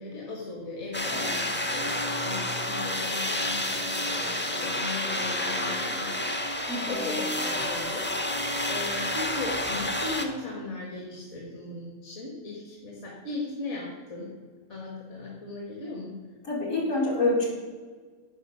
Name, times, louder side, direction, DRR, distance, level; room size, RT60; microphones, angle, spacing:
voice 1, 0.0-14.3 14.7-16.2, left 2 dB, 60° left, -2 dB, 2.0 m, -38 dB
sound 1, 0.9-10.3, left 1 dB, 10° left, 0.6 m, -29 dB
voice 2, 6.7-7.0 16.4-17.5, left 2 dB, 75° left, -4 dB, 3.2 m, -27 dB
10.0 x 5.4 x 6.4 m, 1.5 s
omnidirectional pair, 1.4 m